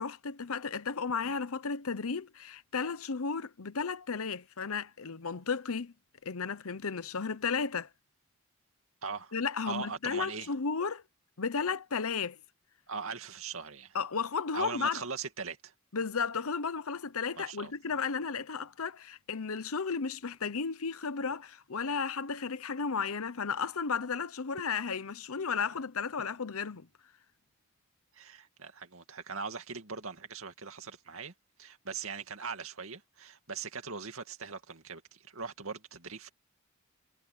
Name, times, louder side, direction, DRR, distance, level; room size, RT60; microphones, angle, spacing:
voice 1, 0.0-5.9 6.2-7.9 9.3-11.0 11.4-12.4 13.9-15.0 15.9-26.9, left 5 dB, 75° left, 0.9 m, -34 dB
voice 2, 9.0-9.3 9.7-10.5 12.9-14.0 14.5-15.7 17.4-18.0 28.1-31.3 31.6-36.3, right 5 dB, 70° right, 2.4 m, -40 dB
head